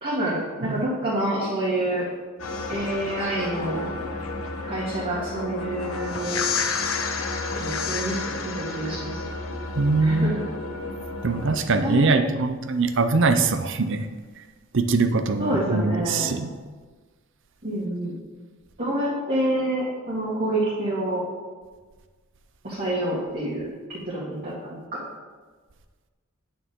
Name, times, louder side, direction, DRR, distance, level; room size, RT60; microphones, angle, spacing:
voice 1, 0.0-2.1 2.7-3.9 4.6-6.4 7.6-9.2 10.0-10.5 11.8-12.2 15.4-16.3 17.6-18.2 18.8-21.2 22.6-25.0, right 1 dB, 45° right, -8 dB, 2.3 m, -27 dB
sound 1, 2.4-11.6, left 4 dB, 80° left, 0.9 m, -31 dB
voice 2, 9.8-10.4 11.2-14.1 14.7-16.5, right 3 dB, 65° right, 9 dB, 0.7 m, -22 dB
9.4 x 8.8 x 3.7 m, 1.4 s
head